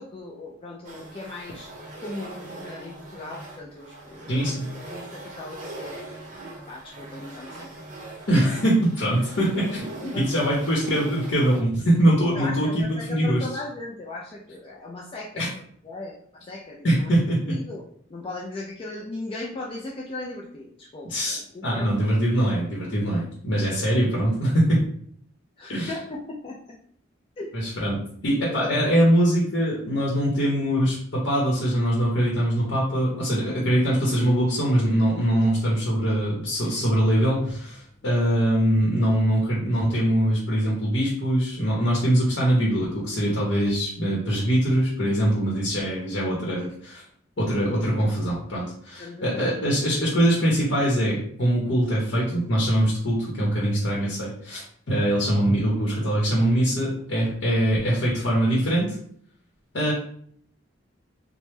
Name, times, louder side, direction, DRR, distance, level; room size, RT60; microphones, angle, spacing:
voice 1, 0.0-1.7 2.0-4.5 4.9-6.0 6.7-7.7 10.0-10.5 12.3-15.5 15.8-17.1 17.5-17.8 18.1-22.0 24.6-24.7 25.6-26.6 27.4-27.5 28.5-28.7 38.0-38.2 49.0-49.5, left 2 dB, 30° left, -2 dB, 0.3 m, -37 dB
sound 1, 0.8-11.6, right 2 dB, 40° right, 0.7 m, -41 dB
voice 2, 4.3-4.7 8.3-13.4 15.4-15.5 16.8-17.5 21.1-24.8 25.7-25.9 27.5-47.0 47.4-59.0 59.7-59.9, right 1 dB, 65° left, -4 dB, 0.8 m, -23 dB
3.2 x 2.0 x 3.1 m, 0.63 s
head